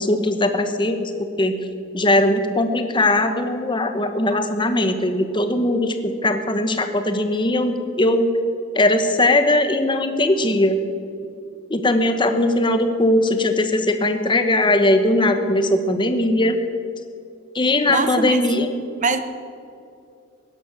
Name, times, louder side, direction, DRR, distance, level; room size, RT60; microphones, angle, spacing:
voice 1, 0.0-1.5 1.9-8.3 8.7-10.8 11.7-16.6 17.5-18.7, left 1 dB, 25° left, 7 dB, 1.1 m, -19 dB
voice 2, 17.9-18.4 19.0-19.2, right 4 dB, 35° right, 10 dB, 1.0 m, -22 dB
16.5 x 11.5 x 7.2 m, 2.5 s
head